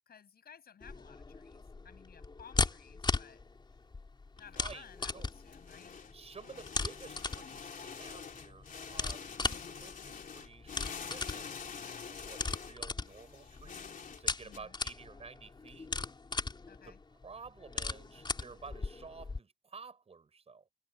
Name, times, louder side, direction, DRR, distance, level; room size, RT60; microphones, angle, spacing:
voice 1, 0.0-3.4 4.4-5.9 14.4-14.7 16.7-17.0, left 7 dB, 75° left, 7.0 m, -57 dB
sound 1, 0.8-19.4, left 3 dB, 30° left, 4.0 m, -38 dB
sound 2, 4.4-14.6, left 6 dB, 55° left, 3.5 m, -46 dB
voice 2, 4.5-5.3 6.1-15.9 16.8-16.9 17.2-20.7, right 5 dB, 40° right, 5.8 m, -52 dB
wide cardioid pair, 165°, 16 cm